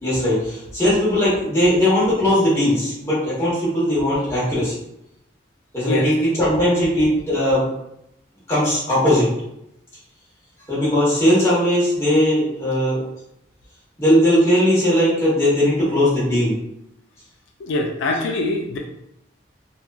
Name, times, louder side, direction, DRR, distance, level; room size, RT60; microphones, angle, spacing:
voice 1, 0.0-4.7 5.7-7.7 8.5-9.3 10.7-13.0 14.0-16.6, equal, 15° left, -10 dB, 0.9 m, -18 dB
voice 2, 17.6-18.8, left 2 dB, 70° left, 1 dB, 0.3 m, -23 dB
3.0 x 2.3 x 2.2 m, 0.82 s
head